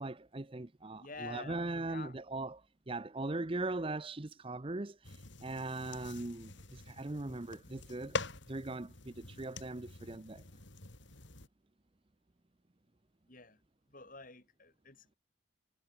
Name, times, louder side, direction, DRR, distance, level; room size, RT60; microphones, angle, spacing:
voice 1, 0.0-8.2 8.5-10.4, right 2 dB, 25° right, 0.7 m, -40 dB
voice 2, 1.0-2.2 13.3-13.6 13.9-15.2, left 3 dB, 40° left, 5.4 m, -49 dB
sound 1, 5.0-11.5, left 3 dB, 60° left, 3.6 m, -45 dB
head